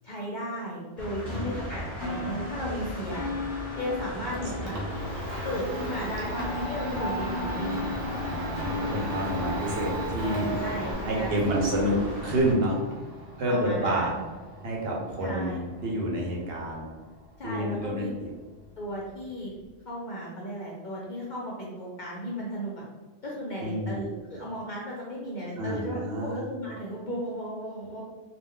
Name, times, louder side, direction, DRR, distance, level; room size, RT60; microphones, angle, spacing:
voice 1, 0.0-3.2 3.8-4.8 5.4-7.9 10.6-11.7 13.4-14.2 15.2-15.6 17.4-18.1 18.8-19.5 19.8-22.9 23.2-28.0, equal, 55° left, -4 dB, 0.6 m, -35 dB
sound 1, 1.0-12.5, equal, ahead, 0.8 m, -37 dB
sound 2, 2.0-10.9, left 2 dB, 30° right, 0.6 m, -36 dB
Domestic sounds home sounds, 3.8-19.7, right 1 dB, 85° right, 1.0 m, -39 dB
voice 2, 8.2-10.6 11.0-12.0 12.2-12.8 13.4-14.1 14.6-16.9 17.4-18.3 23.6-24.0 25.5-26.4, right 1 dB, 60° right, -3 dB, 0.8 m, -29 dB
2.3 x 2.1 x 3.6 m, 1.3 s
omnidirectional pair, 1.2 m